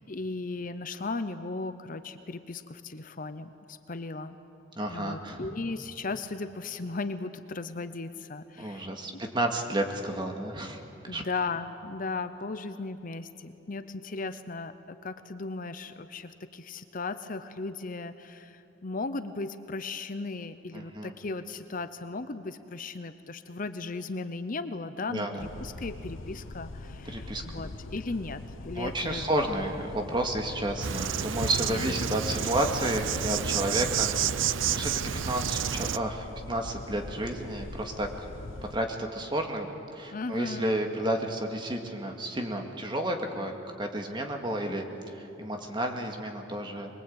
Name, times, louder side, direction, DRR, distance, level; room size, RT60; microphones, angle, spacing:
voice 1, 0.1-4.4 4.9-9.2 11.1-29.2 31.7-32.0 40.1-40.7, left 3 dB, 45° left, 11 dB, 0.8 m, -36 dB
voice 2, 4.8-5.5 8.6-11.2 20.7-21.1 25.1-25.5 27.1-27.7 28.8-34.9 35.2-38.1 38.7-46.9, right 1 dB, 25° right, 3 dB, 2.2 m, -31 dB
sound 1, 25.4-38.8, left 2 dB, 85° left, 0.9 m, -43 dB
Insect, 30.8-36.0, right 8 dB, 70° right, 0.6 m, -30 dB
24.0 x 22.0 x 8.8 m, 2.8 s
head